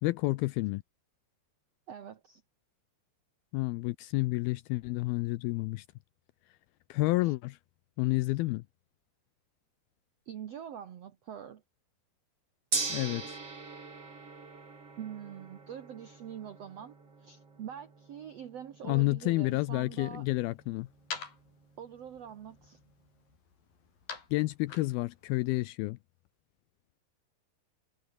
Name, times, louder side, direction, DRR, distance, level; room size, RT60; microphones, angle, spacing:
voice 1, 0.0-0.8 3.5-5.9 6.9-7.6 8.0-8.6 12.9-13.4 18.8-20.9 24.3-26.0, left 20 dB, 80° left, 2.2 m, -30 dB
voice 2, 1.9-2.4 7.2-7.3 10.2-11.6 15.0-20.2 21.8-22.8, right 9 dB, 75° right, 1.5 m, -44 dB
Gong, 12.7-22.9, right 4 dB, 35° right, 5.4 m, -42 dB
sound 1, 19.2-25.7, left 5 dB, 55° left, 6.3 m, -48 dB
omnidirectional pair, 4.8 m